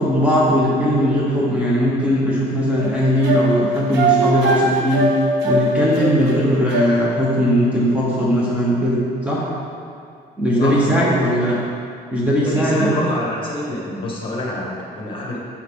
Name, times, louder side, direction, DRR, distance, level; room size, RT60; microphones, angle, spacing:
voice 1, 0.0-5.1 5.4-9.5 10.4-11.6 12.1-13.1, equal, 5° right, -6 dB, 1.2 m, -19 dB
sound 1, 2.8-7.3, right 2 dB, 90° right, 0.9 m, -21 dB
voice 2, 10.6-11.1 12.4-15.4, left 1 dB, 30° left, -4 dB, 1.8 m, -27 dB
7.3 x 5.6 x 3.8 m, 2.4 s
cardioid pair, 110°, 17 cm